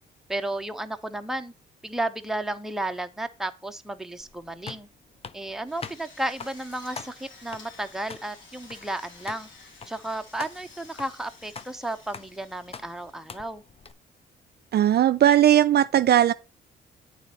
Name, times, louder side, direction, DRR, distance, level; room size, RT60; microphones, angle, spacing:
voice 1, 0.3-1.5 1.8-4.9 5.3-9.5 9.9-13.6, right 1 dB, ahead, 0.8 m, -33 dB
sound 1, 4.2-13.9, left 5 dB, 30° left, 0.6 m, -45 dB
Drill, 5.6-13.5, left 3 dB, 75° left, 2.7 m, -51 dB
voice 2, 14.7-16.3, right 11 dB, 55° right, 0.4 m, -18 dB
8.8 x 4.2 x 4.3 m
cardioid pair, 90°, 20 cm